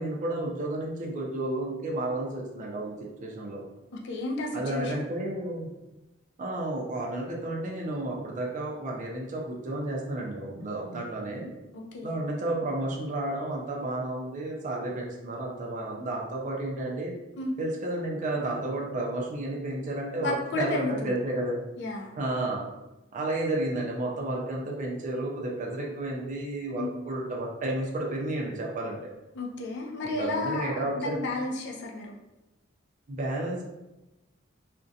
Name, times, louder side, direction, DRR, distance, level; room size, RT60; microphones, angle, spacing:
voice 1, 0.0-3.6 4.5-5.7 6.4-11.5 12.0-17.1 17.6-21.6 22.2-22.6 23.1-29.0 30.0-31.2 33.1-33.6, right 1 dB, 40° right, -2 dB, 0.4 m, -32 dB
voice 2, 3.9-5.0 11.7-12.2 17.4-17.5 20.2-21.1 21.8-22.2 26.8-26.9 29.3-32.2, left 2 dB, 60° left, 0 dB, 0.4 m, -32 dB
2.4 x 2.1 x 2.6 m, 1.0 s
head